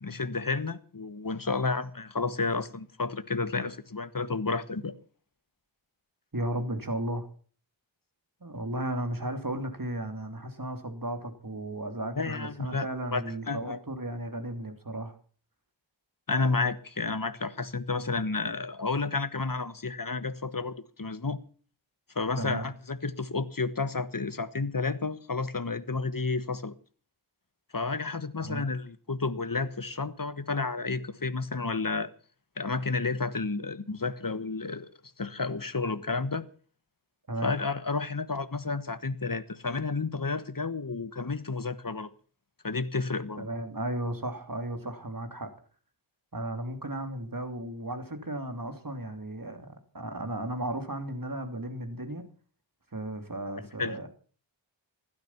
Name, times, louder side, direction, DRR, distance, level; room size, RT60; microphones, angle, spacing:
voice 1, 0.0-4.9 12.2-12.9 13.1-13.8 16.3-21.4 22.1-26.7 27.7-32.1 32.6-34.9 35.2-36.5 37.4-42.1 42.6-43.5 53.8-54.0, left 4 dB, 45° left, 1.4 m, -31 dB
voice 2, 6.3-7.3 8.4-15.2 22.4-22.6 28.4-28.6 37.3-37.5 43.4-45.5 46.3-52.3 52.9-54.1, right 1 dB, 45° right, 2.9 m, -35 dB
16.0 x 12.5 x 5.8 m
wide cardioid pair, 40°, 46 cm